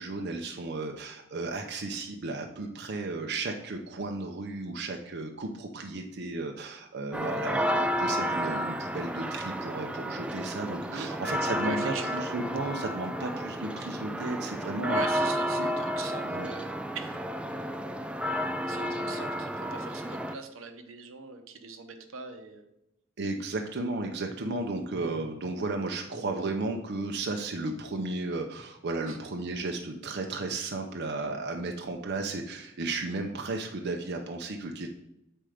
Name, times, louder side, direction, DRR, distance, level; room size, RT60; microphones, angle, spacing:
voice 1, 0.0-15.3 15.6-15.7 16.2-16.5 23.2-34.9, right 2 dB, 55° right, 3 dB, 0.6 m, -34 dB
sound 1, 7.1-20.4, equal, 5° right, 0.3 m, -31 dB
voice 2, 11.6-12.2 14.9-17.2 17.4-17.5 18.7-22.7 29.1-29.2, right 4 dB, 80° right, 6 dB, 0.9 m, -41 dB
7.6 x 4.4 x 5.0 m, 0.85 s
head